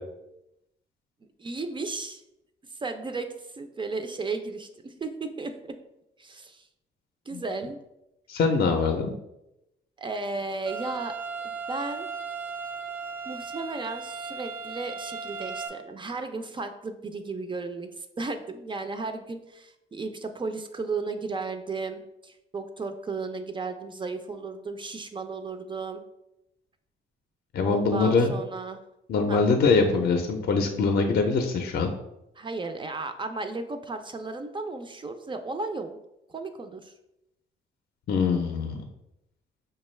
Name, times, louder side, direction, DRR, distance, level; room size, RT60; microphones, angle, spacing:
voice 1, 1.4-2.2 2.7-5.7 6.2-6.7 7.3-7.8 10.0-11.1 11.4-12.1 13.2-26.0 27.6-28.8 29.3-29.4 32.4-36.0 36.3-36.9, right 3 dB, 25° right, 7 dB, 0.3 m, -34 dB
voice 2, 8.3-9.1 27.5-28.3 29.1-31.9 38.1-38.9, left 4 dB, 50° left, 4 dB, 0.5 m, -23 dB
sound 1, 10.7-15.7, right 5 dB, 85° right, 0.6 m, -36 dB
5.1 x 2.3 x 3.1 m, 0.88 s
cardioid pair, 90°, 20 cm